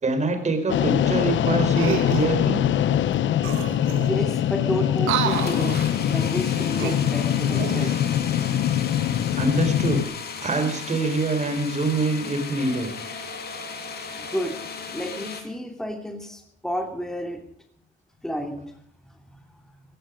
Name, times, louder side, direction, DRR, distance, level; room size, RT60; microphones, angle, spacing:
voice 1, 0.0-2.6 9.3-10.1 10.4-12.9, right 3 dB, 35° right, 7 dB, 4.4 m, -25 dB
sound 1, 0.7-10.0, left 11 dB, 70° left, 0.8 m, -23 dB
sound 2, 1.7-2.3 3.1-3.2 3.4-4.3 5.0-6.0 6.6-8.0 8.6-8.8, right 10 dB, 90° right, 1.7 m, -30 dB
voice 2, 4.0-5.8 6.1-7.9 14.1-14.6 14.9-17.4 18.2-18.7 19.3-19.5, equal, ahead, 4 dB, 2.8 m, -31 dB
sound 3, 5.3-15.4, left 5 dB, 55° left, 3.0 m, -35 dB
16.0 x 15.5 x 5.1 m, 0.62 s
cardioid pair, 90°, 20 cm